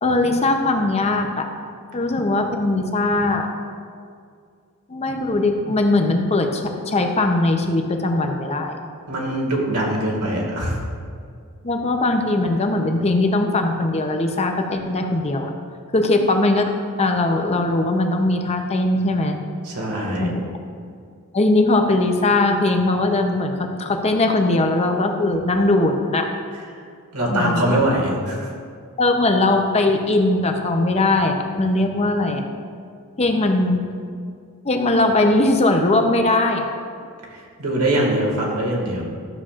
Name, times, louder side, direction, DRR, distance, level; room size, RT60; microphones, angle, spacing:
voice 1, 0.0-1.5 1.9-3.5 4.9-8.8 11.6-15.5 15.9-16.7 17.0-19.4 20.2-20.4 21.3-26.3 27.3-27.8 29.0-32.4 33.2-33.8 34.6-36.7, left 2 dB, 30° left, 4 dB, 0.7 m, -20 dB
voice 2, 9.1-10.8 19.6-20.3 26.7-26.8 27.1-28.5 37.3-39.1, right 1 dB, 90° right, -2 dB, 2.0 m, -22 dB
12.5 x 7.2 x 2.5 m, 2.2 s
head